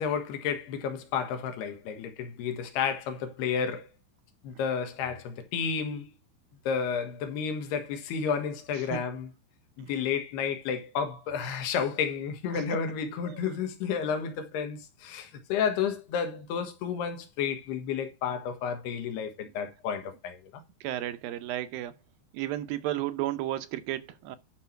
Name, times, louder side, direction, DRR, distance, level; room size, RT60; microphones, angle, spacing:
voice 1, 0.0-3.9 4.4-6.1 6.7-9.3 9.8-20.6, left 7 dB, 85° left, 3.5 m, -31 dB
voice 2, 20.8-21.9 22.3-24.4, right 14 dB, 75° right, 2.4 m, -33 dB
11.5 x 6.0 x 4.6 m
omnidirectional pair, 4.6 m